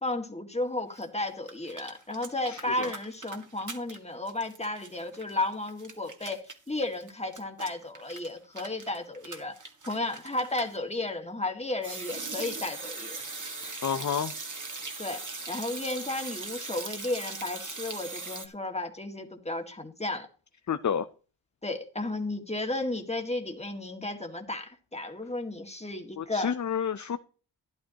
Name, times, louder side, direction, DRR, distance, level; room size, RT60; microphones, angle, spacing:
voice 1, 0.0-9.5 9.9-13.2 15.0-15.2 15.5-20.3 21.6-26.6, left 2 dB, 15° left, 2.0 m, -33 dB
sound 1, 1.0-1.1 1.3-4.0 4.3-10.7 11.8-18.5, right 3 dB, 40° right, 2.0 m, -40 dB
voice 2, 13.8-14.3 20.7-21.0 26.2-27.2, left 7 dB, 40° left, 0.7 m, -29 dB
13.0 x 11.0 x 2.9 m
cardioid pair, 65°, 47 cm